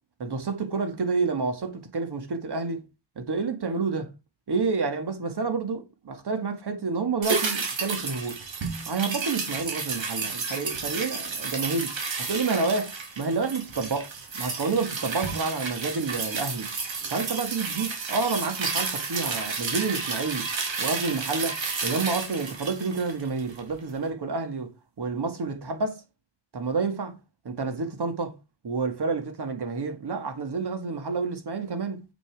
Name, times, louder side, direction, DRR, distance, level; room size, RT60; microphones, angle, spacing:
voice 1, 0.2-2.8 3.2-4.1 4.5-8.4 8.9-11.9 12.2-12.9 13.2-14.1 14.3-16.7 17.1-20.5 20.8-21.6 21.8-24.7 25.0-26.0 26.5-27.2 27.4-28.3 28.6-32.0, right 4 dB, 60° right, 2.2 m, -29 dB
sound 1, 7.2-23.7 24.0-24.1, right 4 dB, 80° right, 3.4 m, -31 dB
8.4 x 7.0 x 4.9 m
wide cardioid pair, 150°, 45 cm